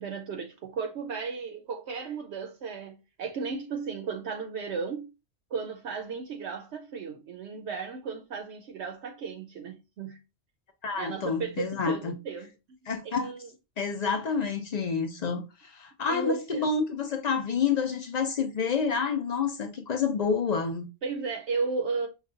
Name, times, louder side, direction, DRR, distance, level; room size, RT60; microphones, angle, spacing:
voice 1, 0.0-5.1 5.5-10.2 10.9-12.8 13.0-13.5 16.1-16.7 21.0-22.1, right 5 dB, 70° right, 0.8 m, -34 dB
voice 2, 10.8-12.1 12.9-13.3 13.8-20.9, left 5 dB, 60° left, 0.4 m, -28 dB
5.6 x 2.3 x 2.4 m
omnidirectional pair, 1.2 m